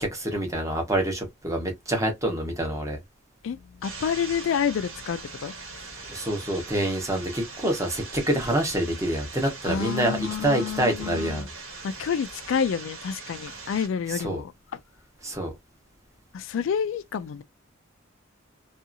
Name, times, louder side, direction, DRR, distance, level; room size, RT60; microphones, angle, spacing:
voice 1, 0.0-3.0 6.1-11.5 14.2-14.4 15.2-15.5, right 1 dB, 15° right, 0.9 m, -26 dB
voice 2, 3.4-5.6 9.6-11.5 11.8-14.5 16.3-17.4, left 7 dB, 65° left, 0.3 m, -29 dB
sound 1, 3.8-13.9, right 3 dB, 85° right, 1.3 m, -41 dB
2.7 x 2.4 x 2.5 m
head